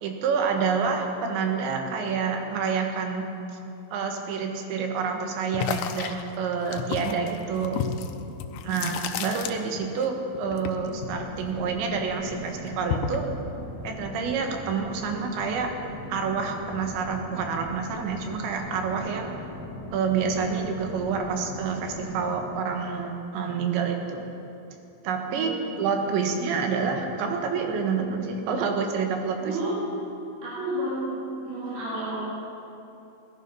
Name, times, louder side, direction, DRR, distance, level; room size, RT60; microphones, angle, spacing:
voice 1, 0.0-3.2 3.9-7.8 8.6-13.2 13.8-15.7 16.1-19.3 19.9-24.3 25.0-25.5 25.8-29.6, right 5 dB, 85° right, 3 dB, 3.7 m, -28 dB
sound 1, 5.5-10.1 10.3-12.0 12.3-13.3, left 8 dB, 85° left, 3.0 m, -32 dB
sound 2, 10.8-22.3, left 2 dB, 45° left, 1.1 m, -40 dB
voice 2, 25.3-26.0 29.4-29.9 30.4-31.1 31.4-32.2, right 1 dB, 60° right, -12 dB, 5.4 m, -31 dB
19.0 x 12.5 x 5.5 m, 2.9 s
omnidirectional pair, 5.0 m